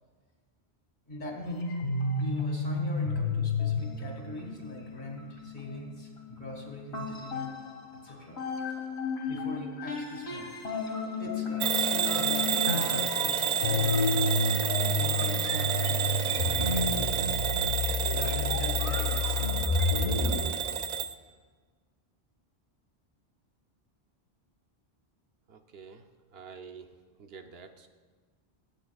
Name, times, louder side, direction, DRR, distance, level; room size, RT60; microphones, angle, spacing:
voice 1, 1.1-1.7 2.2-7.5 8.0-8.4 8.7-8.8 9.3-10.5 11.2-14.3 15.0-17.4 17.9-19.8, left 1 dB, 45° left, 0 dB, 2.2 m, -41 dB
sound 1, 1.4-8.0 8.4-20.4, left 3 dB, 80° left, 1.7 m, -31 dB
Bell / Alarm, 11.6-21.1, right 8 dB, 55° right, 0.5 m, -30 dB
voice 2, 25.5-26.9 27.2-27.9, right 5 dB, 70° right, 6 dB, 0.9 m, -48 dB
24.5 x 8.2 x 2.3 m, 1.5 s
omnidirectional pair, 1.1 m